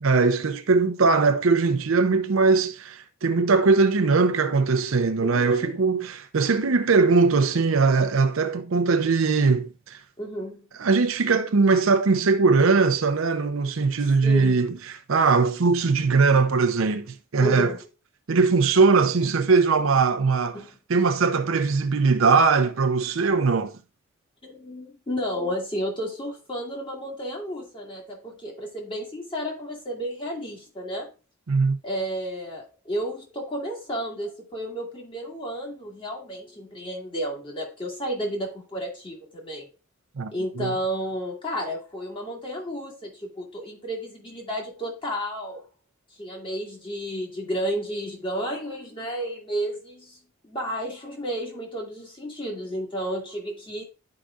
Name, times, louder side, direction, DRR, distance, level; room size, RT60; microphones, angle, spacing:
voice 1, 0.0-10.0 10.8-17.7 18.3-20.6 20.9-23.8 31.5-31.8 40.2-40.8, right 4 dB, 75° right, 0.6 m, -21 dB
voice 2, 5.2-5.8 10.2-10.6 14.2-14.6 17.4-17.8 20.5-20.7 24.4-31.1 31.8-39.7 40.3-45.6 46.2-50.2 50.4-53.8, equal, 25° left, 2.1 m, -32 dB
11.5 x 4.9 x 2.4 m
head